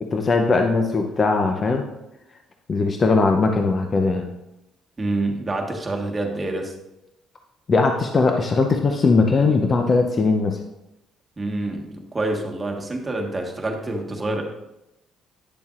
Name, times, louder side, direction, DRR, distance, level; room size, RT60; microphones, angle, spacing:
voice 1, 0.0-1.8 2.7-4.3 7.7-10.6, left 3 dB, 40° left, 4 dB, 0.7 m, -19 dB
voice 2, 5.0-6.7 11.4-14.4, right 2 dB, 25° right, 1 dB, 1.4 m, -27 dB
9.9 x 6.9 x 2.5 m, 0.89 s
cardioid pair, 90°, 0 cm